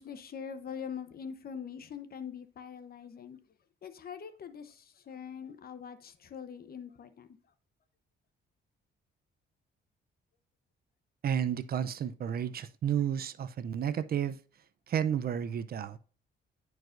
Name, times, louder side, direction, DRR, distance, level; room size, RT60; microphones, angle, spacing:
voice 1, 0.0-3.4 3.8-7.4, left 7 dB, 50° left, 0.9 m, -43 dB
voice 2, 11.2-14.4 14.9-16.0, right 9 dB, 50° right, 0.5 m, -31 dB
10.5 x 4.7 x 2.5 m
cardioid pair, 90°, 20 cm